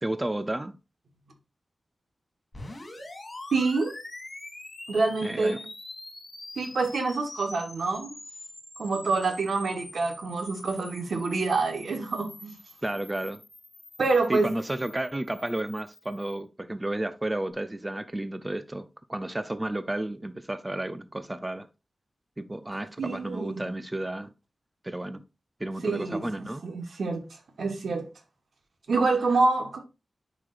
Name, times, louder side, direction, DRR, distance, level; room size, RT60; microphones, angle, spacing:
voice 1, 0.0-0.8 5.2-5.6 12.8-13.4 14.3-21.7 22.4-24.3 24.8-25.2 25.6-26.6, right 1 dB, 15° right, 0.4 m, -32 dB
sound 1, 2.5-16.4, left 2 dB, 35° left, 2.6 m, -45 dB
voice 2, 3.5-3.9 4.9-5.7 6.6-8.1 8.8-12.5 14.0-14.5 23.0-23.6 25.8-27.2 27.6-28.1 28.9-29.8, right 3 dB, 85° right, 1.3 m, -27 dB
9.5 x 4.9 x 2.5 m
wide cardioid pair, 130°, 0 cm